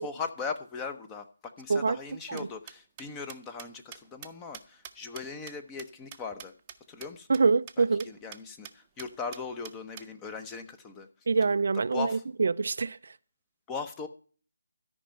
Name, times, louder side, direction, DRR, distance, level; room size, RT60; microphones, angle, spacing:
voice 1, 0.0-6.5 6.9-7.4 7.8-11.1 11.9-12.2 13.7-14.1, left 5 dB, 15° left, 1.0 m, -39 dB
sound 1, 2.1-6.8 7.0-7.1 7.3-7.4 7.7-7.8 8.0-8.4 8.6-8.7 9.0-10.1, right 10 dB, 20° right, 0.8 m, -45 dB
voice 2, 7.3-8.1 11.3-12.1 12.4-13.0, right 4 dB, 55° right, 0.4 m, -25 dB
13.5 x 5.3 x 8.8 m
figure-of-eight pair, 155°, 0 cm